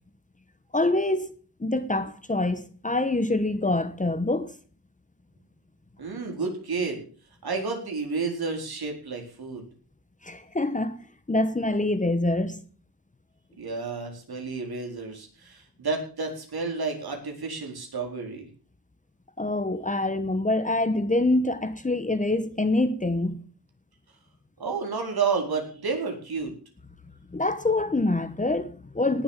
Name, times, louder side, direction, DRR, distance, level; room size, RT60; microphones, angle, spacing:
voice 1, 0.7-4.5 10.2-11.0 11.3-12.6 19.4-23.4 27.3-29.2, left 2 dB, 20° left, 1.2 m, -25 dB
voice 2, 6.0-7.0 7.4-9.7 13.6-18.5 24.6-26.5, right 4 dB, 70° right, 4.5 m, -31 dB
18.5 x 7.4 x 7.4 m
wide cardioid pair, 130°, 39 cm